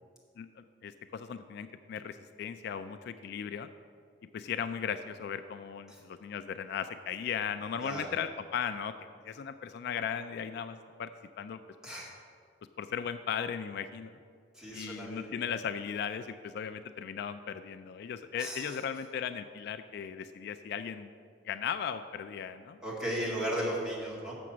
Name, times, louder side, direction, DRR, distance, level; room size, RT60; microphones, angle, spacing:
voice 1, 0.4-3.7 4.3-8.9 9.2-11.1 11.4-11.6 12.8-14.1 14.7-21.1 21.4-22.8, left 7 dB, 60° left, 11 dB, 0.3 m, -37 dB
voice 2, 14.6-15.3 18.4-18.8 22.8-24.3, right 1 dB, 5° right, -6 dB, 2.1 m, -35 dB
6.8 x 6.1 x 7.3 m, 2.2 s
head